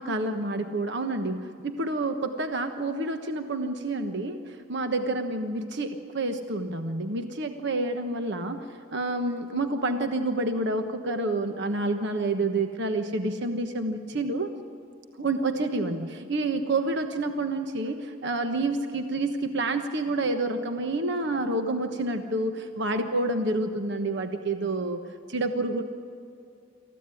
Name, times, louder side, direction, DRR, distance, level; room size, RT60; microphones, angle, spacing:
voice 1, 0.0-8.6 8.9-14.5 15.2-25.8, right 2 dB, 60° right, 6 dB, 1.2 m, -28 dB
27.0 x 15.0 x 9.9 m, 2.6 s
head